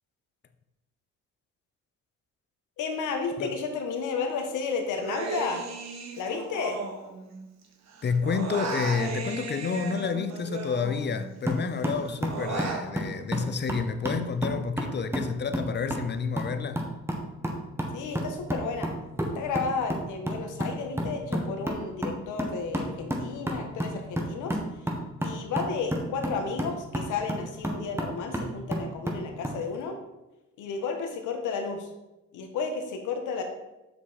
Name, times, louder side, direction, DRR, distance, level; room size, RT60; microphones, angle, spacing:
voice 1, 2.8-5.6 6.2-6.8 17.9-18.9 19.3-24.6 25.2-30.0 30.6-31.9 32.3-33.4, left 5 dB, 85° left, 1.3 m, -32 dB
Human voice, 5.0-7.6 7.9-11.4 11.8-12.9, right 4 dB, 60° right, 1.3 m, -36 dB
voice 2, 8.0-16.9, left 5 dB, 35° left, 0.7 m, -29 dB
sound 1, 11.5-29.6, right 1 dB, 10° right, 1.4 m, -33 dB
7.4 x 5.9 x 4.2 m
cardioid pair, 90°, 30 cm